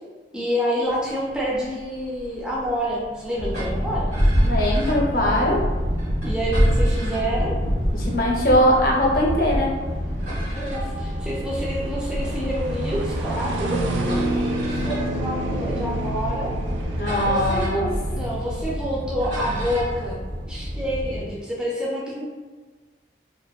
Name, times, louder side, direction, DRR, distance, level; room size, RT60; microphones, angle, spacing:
voice 1, 0.3-4.1 6.2-7.6 10.5-13.8 14.7-16.6 17.1-20.2 20.5-22.2, equal, 5° right, -5 dB, 0.3 m, -28 dB
sound 1, 0.9-19.8, right 1 dB, 90° right, 0.3 m, -33 dB
sound 2, 3.3-8.6 9.4-9.5 9.7-9.8 10.2-21.4, right 1 dB, 70° right, 1.4 m, -40 dB
sound 3, 3.4-21.3, equal, 45° right, 0.7 m, -26 dB
voice 2, 4.4-5.6 7.9-9.7 16.9-17.9, equal, 50° left, -2 dB, 0.5 m, -21 dB
2.6 x 2.1 x 2.2 m, 1.3 s
head